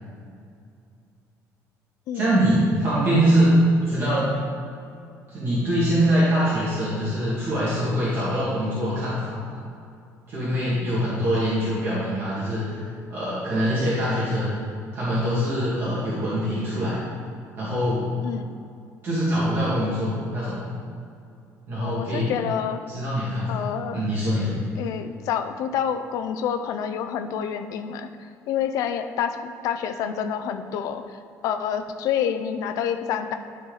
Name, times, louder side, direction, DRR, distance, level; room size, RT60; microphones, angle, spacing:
voice 1, 2.1-3.5 3.9-4.3 5.3-9.4 10.3-12.8 13.1-14.6 14.9-17.0 17.6-18.1 19.0-20.6 21.7-22.3 22.9-23.6 23.9-24.6, equal, 35° right, -10 dB, 2.0 m, -23 dB
voice 2, 18.2-18.6 21.8-22.8 23.5-24.0 24.8-28.1 28.5-31.0 31.4-33.3, left 8 dB, 60° left, 8 dB, 0.5 m, -28 dB
11.5 x 4.5 x 3.9 m, 2.4 s
cardioid pair, 170°, 6 cm